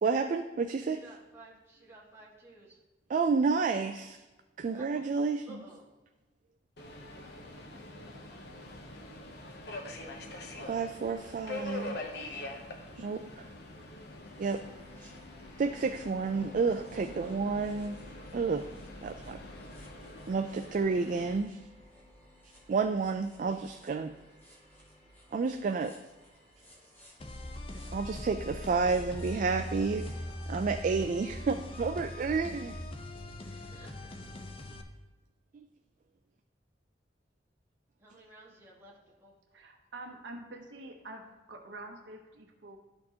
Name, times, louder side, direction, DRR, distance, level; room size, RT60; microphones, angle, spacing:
voice 1, 0.0-1.0 3.1-4.2 4.6-5.6 10.7-12.0 13.0-13.4 14.4-14.6 15.6-18.0 18.3-18.6 19.0-19.4 20.3-21.6 22.7-24.1 25.3-25.9 27.9-30.1 30.5-32.8, right 4 dB, 45° right, 6 dB, 0.3 m, -30 dB
voice 2, 0.9-2.8 4.7-6.0 9.8-11.9 33.4-34.2 38.0-39.3, right 1 dB, 15° right, -6 dB, 1.6 m, -55 dB
Subway metro underground, 6.8-21.4, left 2 dB, 60° left, 0.8 m, -45 dB
sound 1, 14.2-30.4, left 1 dB, 10° left, 1.8 m, -54 dB
sound 2, 27.2-34.8, left 1 dB, 30° left, 0.6 m, -41 dB
voice 3, 39.5-42.8, right 2 dB, 75° right, 2 dB, 0.9 m, -46 dB
12.0 x 4.4 x 2.8 m, 1.1 s
head